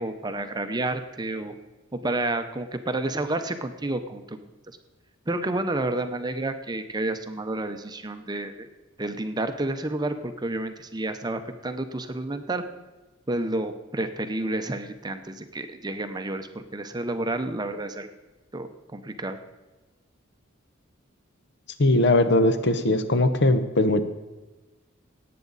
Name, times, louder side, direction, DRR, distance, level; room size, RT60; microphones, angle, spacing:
voice 1, 0.0-1.6 1.9-4.4 4.7-4.8 5.3-8.7 9.0-12.6 13.3-18.1 18.5-19.4, right 2 dB, 20° right, 8 dB, 0.7 m, -30 dB
voice 2, 21.8-24.0, left 2 dB, 55° left, 10 dB, 0.9 m, -20 dB
18.0 x 8.5 x 4.0 m, 1.2 s
head